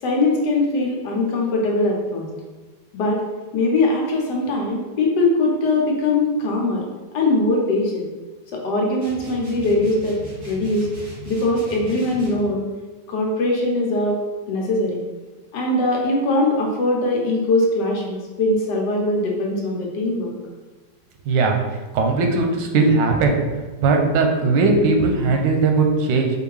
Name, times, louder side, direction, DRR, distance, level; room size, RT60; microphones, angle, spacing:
voice 1, 0.0-2.3 2.9-3.2 3.5-6.8 7.1-8.1 8.5-10.2 10.4-10.9 11.3-12.7 13.1-14.2 14.5-15.0 15.5-20.3, left 2 dB, 75° left, -1 dB, 1.4 m, -21 dB
sound 1, 9.0-12.5, equal, 45° right, 1.9 m, -38 dB
voice 2, 21.2-21.6 21.9-23.4 23.8-26.3, right 3 dB, 90° right, 3 dB, 1.3 m, -18 dB
4.5 x 2.7 x 3.2 m, 1.3 s
omnidirectional pair, 1.9 m